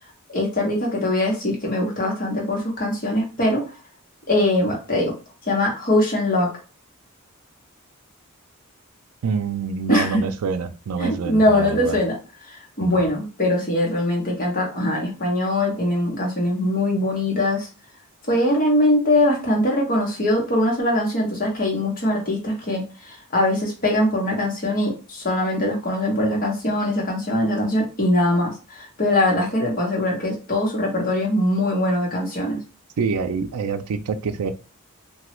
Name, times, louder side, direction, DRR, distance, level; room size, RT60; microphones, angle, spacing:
voice 1, 0.3-3.6 4.3-5.1 5.5-6.5 9.9-10.1 11.0-12.2 12.5-17.7 18.3-32.6, left 1 dB, 40° left, -1 dB, 1.0 m, -22 dB
voice 2, 9.2-12.0 12.8-13.1 33.0-34.5, right 5 dB, 90° right, 10 dB, 0.4 m, -26 dB
3.0 x 2.2 x 3.0 m, 0.33 s
head